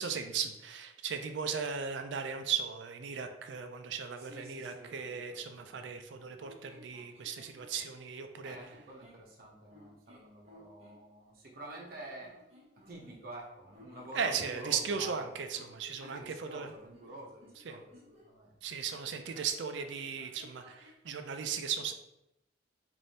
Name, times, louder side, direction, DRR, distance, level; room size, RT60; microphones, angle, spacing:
voice 1, 0.0-8.6 14.2-16.7 17.7-17.8 18.6-21.9, right 6 dB, 70° right, 7 dB, 0.4 m, -37 dB
voice 2, 4.2-5.4 5.7-6.3 8.4-12.4 12.9-15.5 16.0-18.6, right 1 dB, 55° right, -1 dB, 0.8 m, -48 dB
sound 1, 6.4-8.1 8.7-9.3 9.7-11.0 12.2-13.4 13.7-18.3 18.9-21.0, equal, 35° right, 1.2 m, -59 dB
3.3 x 2.6 x 4.1 m, 0.89 s
head